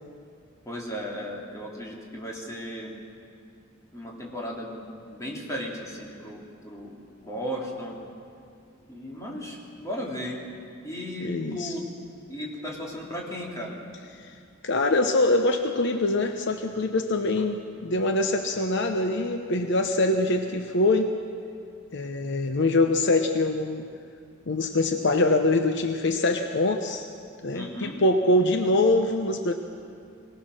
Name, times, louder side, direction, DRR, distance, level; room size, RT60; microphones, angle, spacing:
voice 1, 0.6-2.9 3.9-4.8 5.1-8.0 8.9-10.4 10.8-11.9 12.3-13.8 17.4-17.5 27.5-28.0, equal, 15° left, -3 dB, 3.1 m, -35 dB
voice 2, 11.2-11.7 14.6-21.1 21.9-23.9 24.5-27.1 27.4-29.5, left 2 dB, 60° left, 6 dB, 0.9 m, -24 dB
23.0 x 18.5 x 6.4 m, 2.4 s
head